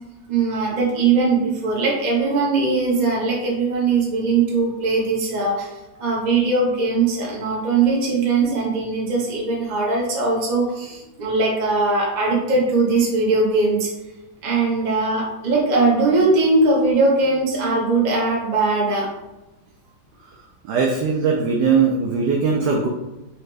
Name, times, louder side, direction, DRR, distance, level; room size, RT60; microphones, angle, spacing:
voice 1, 0.3-5.7 6.0-13.9 14.4-19.1, right 3 dB, 40° right, -3 dB, 0.6 m, -20 dB
voice 2, 20.6-22.9, right 5 dB, 75° right, 0 dB, 0.9 m, -20 dB
4.3 x 2.8 x 3.2 m, 1.0 s
omnidirectional pair, 2.2 m